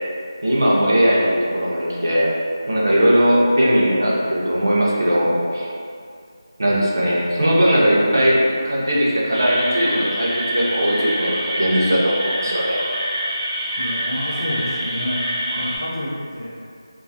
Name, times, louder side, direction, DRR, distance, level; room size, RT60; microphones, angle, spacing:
voice 1, 0.4-2.3 2.7-5.7 6.6-12.8, equal, 45° right, -5 dB, 0.5 m, -18 dB
sound 1, 9.3-15.8, equal, 85° right, 0.9 m, -26 dB
voice 2, 13.8-15.2 15.5-16.5, equal, 25° left, -11 dB, 0.4 m, -28 dB
2.4 x 2.3 x 2.6 m, 2.3 s
figure-of-eight pair, 180°, 2 cm